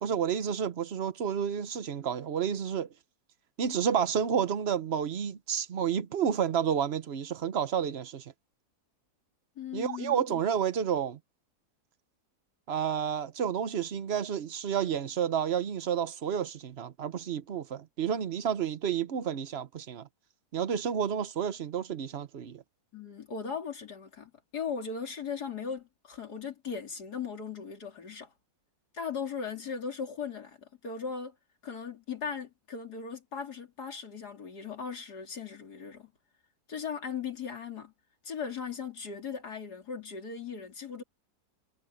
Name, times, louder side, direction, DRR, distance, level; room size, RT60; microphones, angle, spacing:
voice 1, 0.0-2.9 3.6-8.2 9.7-11.2 12.7-20.1 20.5-22.6, right 8 dB, 45° right, 1.1 m, -30 dB
voice 2, 9.6-10.4 22.9-28.3 28.9-31.4 31.6-36.1 36.7-37.9 38.2-41.0, left 6 dB, 85° left, 3.5 m, -38 dB
omnidirectional pair, 1.7 m